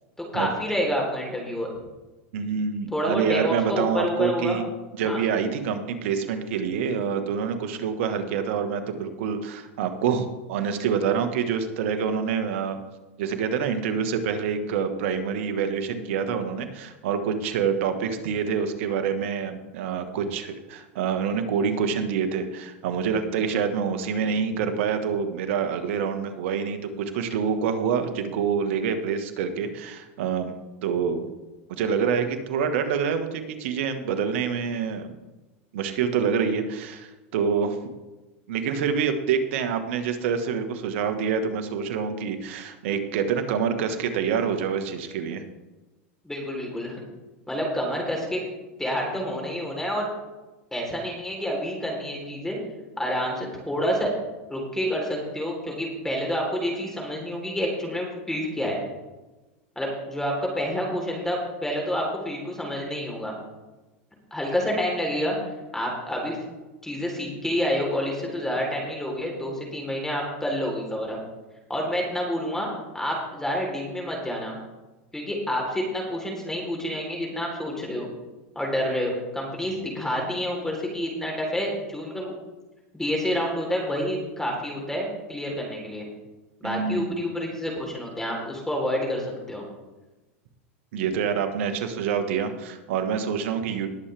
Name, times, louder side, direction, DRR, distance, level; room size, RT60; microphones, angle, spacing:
voice 1, 0.3-1.7 2.9-4.6 5.0-5.2 46.2-47.0 47.5-48.4 48.8-50.1 50.7-52.6 53.0-54.1 54.5-58.8 59.8-63.4 64.3-65.4 65.7-66.4 66.8-71.2 71.7-72.7 72.9-74.6 75.1-78.1 78.6-82.3 82.9-86.1 86.6-89.6, equal, 5° left, 0 dB, 3.8 m, -28 dB
voice 2, 2.3-4.6 5.0-12.8 13.2-30.5 30.8-31.3 31.7-35.1 35.7-37.8 38.5-45.4 79.7-79.8 86.6-87.1 90.9-93.9, right 6 dB, 70° right, 8 dB, 1.6 m, -26 dB
20.5 x 7.4 x 3.5 m, 1.1 s
hypercardioid pair, 110°, 7 cm